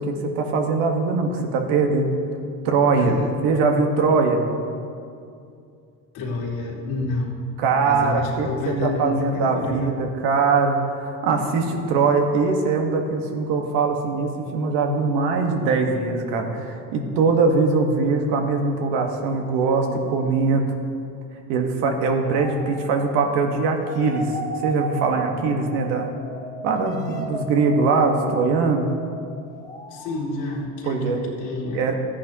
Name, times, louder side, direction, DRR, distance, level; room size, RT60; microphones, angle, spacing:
voice 1, 0.0-2.1 2.6-4.4 7.6-20.7 21.5-26.1 26.6-28.9 30.8-31.2 31.7-31.9, right 4 dB, 85° right, 3 dB, 1.4 m, -22 dB
voice 2, 2.9-3.3 6.1-7.4 7.8-10.0 29.9-31.9, left 2 dB, 90° left, -4 dB, 2.4 m, -28 dB
sound 1, 22.3-30.5, right 1 dB, 10° left, 1.5 m, -35 dB
14.0 x 10.0 x 2.9 m, 2.4 s
supercardioid pair, 100°, 39 cm